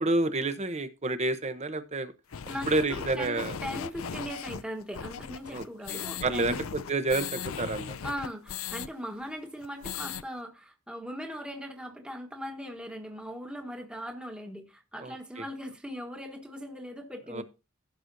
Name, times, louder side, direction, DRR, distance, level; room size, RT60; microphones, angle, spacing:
voice 1, 0.0-2.1 2.7-3.6 5.5-8.0 15.0-15.4 17.3-17.4, right 2 dB, 30° right, 1.0 m, -29 dB
sound 1, 2.3-8.9 9.2-9.3 9.6-10.2, left 7 dB, 70° left, 0.5 m, -38 dB
voice 2, 2.5-6.7 8.0-17.4, equal, 5° right, 1.5 m, -39 dB
16.0 x 6.2 x 2.7 m
head